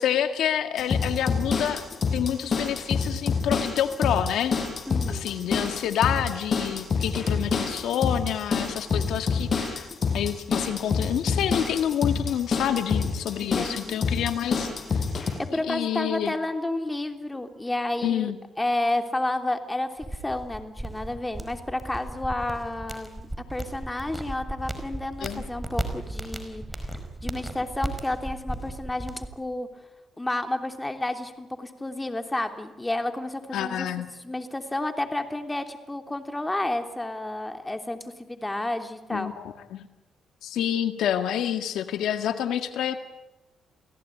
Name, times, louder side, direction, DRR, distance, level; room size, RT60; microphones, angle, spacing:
voice 1, 0.0-1.8 2.1-4.6 5.1-9.9 10.1-14.7 15.5-16.3 18.0-18.4 25.2-25.4 33.5-34.1 39.1-39.4 39.7-39.8 40.4-43.0, left 10 dB, 80° left, 8 dB, 1.7 m, -28 dB
sound 1, 0.8-15.3, left 5 dB, 45° left, 6.7 m, -27 dB
voice 2, 4.9-5.3 13.5-14.1 14.7-14.9 15.4-18.3 18.6-26.9 27.2-29.7 30.2-33.9 34.2-39.3, left 1 dB, 15° left, 6 dB, 3.2 m, -31 dB
sound 2, 20.0-29.3, right 1 dB, 10° right, 5.0 m, -35 dB
29.5 x 17.5 x 10.0 m, 1.1 s
cardioid pair, 90°, 0 cm